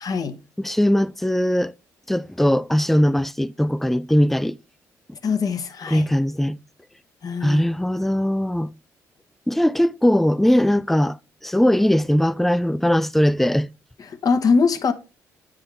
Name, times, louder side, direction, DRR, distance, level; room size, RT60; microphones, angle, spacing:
voice 1, 0.0-0.4 5.2-6.1 7.2-7.6 14.0-14.9, left 5 dB, 50° left, 1.1 m, -22 dB
voice 2, 0.6-1.7 2.1-4.6 5.9-6.6 7.4-8.7 9.5-11.2 11.4-13.7, equal, 5° left, 0.4 m, -20 dB
9.9 x 3.7 x 3.3 m
hypercardioid pair, 45°, 8 cm